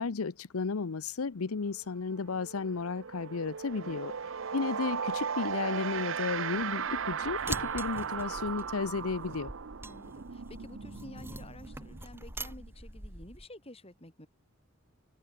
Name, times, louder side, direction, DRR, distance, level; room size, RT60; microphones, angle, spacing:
voice 1, 0.0-4.1 4.5-9.5, left 4 dB, 80° left, 0.7 m, -33 dB
sound 1, 1.6-1.8 2.1-12.7, right 6 dB, 60° right, 0.6 m, -37 dB
voice 2, 3.8-4.2 4.5-4.7 9.8-14.3, left 1 dB, 25° left, 5.3 m, -51 dB
sound 2, 6.5-9.1 10.1-10.2 10.4-13.1, right 1 dB, 35° right, 2.5 m, -55 dB
sound 3, 7.3-13.4, right 2 dB, 10° right, 2.3 m, -44 dB
head